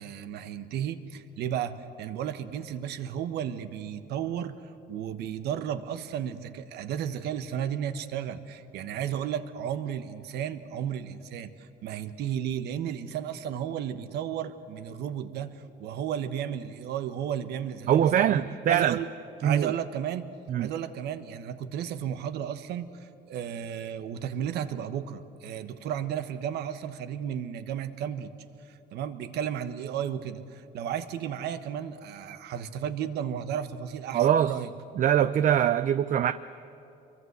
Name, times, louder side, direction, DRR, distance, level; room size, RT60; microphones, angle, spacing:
voice 1, 0.0-19.1 19.4-20.3 20.6-28.3 28.6-34.7, right 9 dB, 75° right, 10 dB, 1.3 m, -34 dB
voice 2, 17.9-19.0 19.4-19.7 20.5-20.7 34.1-34.6 35.0-36.3, right 10 dB, 50° right, 13 dB, 0.6 m, -23 dB
25.5 x 23.0 x 8.1 m, 2.9 s
cardioid pair, 110°, 17 cm